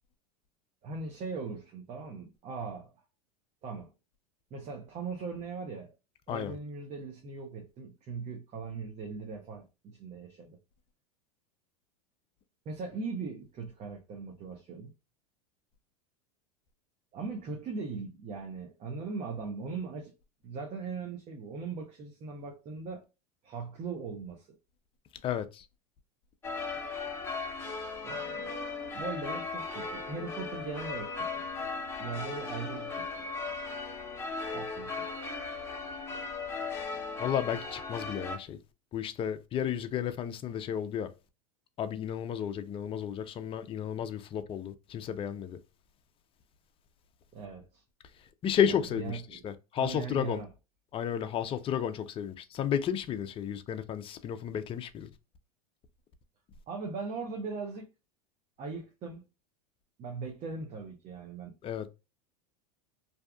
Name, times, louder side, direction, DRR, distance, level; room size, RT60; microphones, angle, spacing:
voice 1, 0.8-2.9 3.6-3.9 4.5-5.9 6.3-10.6 12.7-14.9 17.1-20.1 20.4-23.0 23.4-24.5 28.0-28.5 28.9-31.5 32.0-33.2 34.5-35.1 47.3-47.8 48.7-49.4 49.7-50.5 56.7-57.9 58.6-59.3 60.0-61.5, right 4 dB, 35° right, 0.8 m, -39 dB
voice 2, 25.2-25.7 37.2-38.6 38.9-41.1 41.8-45.6 48.4-50.4 50.9-55.1 61.6-61.9, left 9 dB, 30° left, 0.4 m, -32 dB
sound 1, 26.4-38.4, left 4 dB, 10° left, 1.0 m, -37 dB
2.7 x 2.3 x 2.2 m
hypercardioid pair, 105°, 19 cm